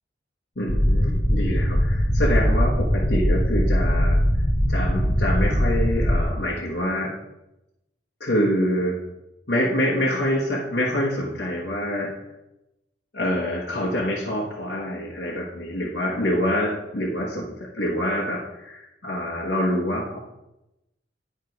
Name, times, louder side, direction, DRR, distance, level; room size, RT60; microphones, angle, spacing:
voice 1, 0.6-4.2 4.7-7.1 8.2-9.0 9.5-12.1 13.1-20.2, equal, 60° left, -5 dB, 1.2 m, -26 dB
sound 1, 0.7-6.2, equal, 30° left, 1.1 m, -21 dB
9.0 x 4.8 x 5.3 m, 0.92 s
head